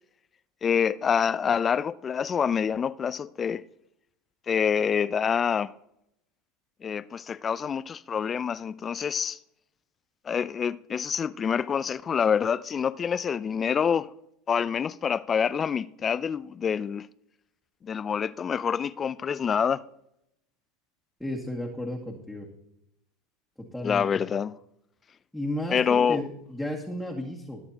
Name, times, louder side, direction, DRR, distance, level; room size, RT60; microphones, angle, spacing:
voice 1, 0.6-3.6 4.5-5.7 6.8-9.4 10.2-14.1 14.5-17.1 17.8-19.8 23.8-24.6 25.7-26.2, left 7 dB, 30° left, 0.5 m, -26 dB
voice 2, 21.2-22.5 23.6-24.1 25.3-27.6, left 1 dB, ahead, 2.1 m, -33 dB
20.5 x 8.8 x 2.9 m
hypercardioid pair, 90°, 0 cm